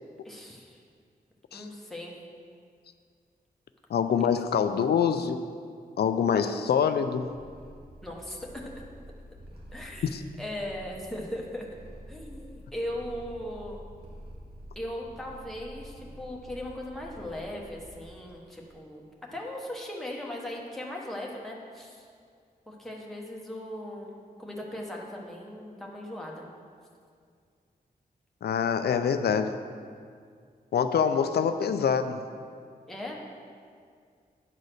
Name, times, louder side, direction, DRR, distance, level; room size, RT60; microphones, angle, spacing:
voice 1, 0.2-0.8 1.5-2.1 8.0-8.7 9.7-11.7 12.1-13.8 14.7-19.0 19.3-22.1 22.7-26.5 32.9-33.2, left 1 dB, ahead, -2 dB, 1.0 m, -38 dB
voice 2, 3.9-5.4 6.0-7.3 10.0-10.2 28.4-29.6 30.7-32.2, left 7 dB, 85° left, 9 dB, 0.4 m, -25 dB
Purr, 7.2-18.3, equal, 80° right, 1.6 m, -48 dB
9.9 x 4.1 x 6.5 m, 2.2 s
wide cardioid pair, 175°, 16 cm